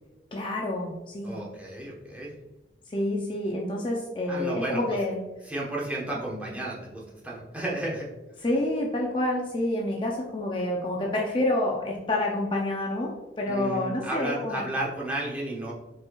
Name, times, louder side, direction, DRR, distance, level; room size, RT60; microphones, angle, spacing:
voice 1, 0.3-1.4 2.9-5.2 8.4-14.6, left 1 dB, 30° left, -1 dB, 0.5 m, -28 dB
voice 2, 1.2-2.3 4.3-4.8 5.4-8.1 13.5-15.7, right 1 dB, 10° right, -5 dB, 1.0 m, -33 dB
5.1 x 4.4 x 2.3 m, 1.1 s
head